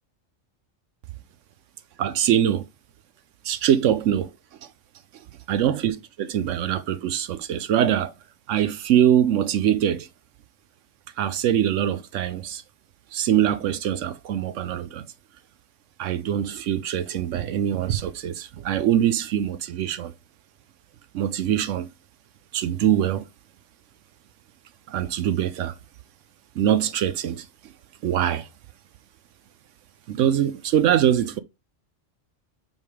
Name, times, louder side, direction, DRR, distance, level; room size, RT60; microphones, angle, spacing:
voice 1, 2.0-2.7 3.4-4.3 5.5-8.1 8.5-10.1 11.2-12.6 13.1-15.0 16.0-20.1 21.1-21.9 22.5-23.2 24.9-25.7 26.6-27.5 28.0-28.5 30.1-31.4, right 10 dB, 80° right, 0.9 m, -23 dB
7.5 x 3.6 x 4.8 m
omnidirectional pair, 1.3 m